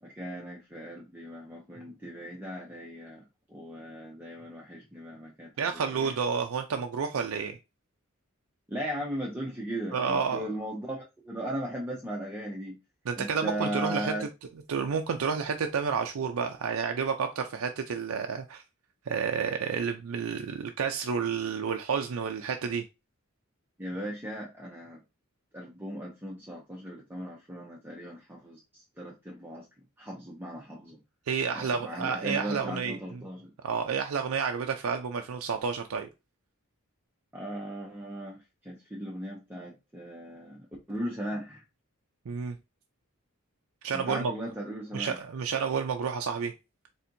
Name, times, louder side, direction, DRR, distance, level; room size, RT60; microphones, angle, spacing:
voice 1, 0.0-3.2 3.5-5.5 5.9-6.2 8.7-12.8 13.2-14.3 23.8-25.0 25.5-29.7 30.0-31.0 31.5-33.5 37.3-41.6 43.9-45.2, equal, 10° right, 0.7 m, -37 dB
voice 2, 5.6-7.6 9.9-10.5 13.1-14.3 14.7-18.6 19.1-22.8 31.3-33.2 33.6-36.1 42.3-42.6 43.8-44.3 44.9-46.5, right 6 dB, 90° right, 0.5 m, -30 dB
4.3 x 3.5 x 2.6 m
head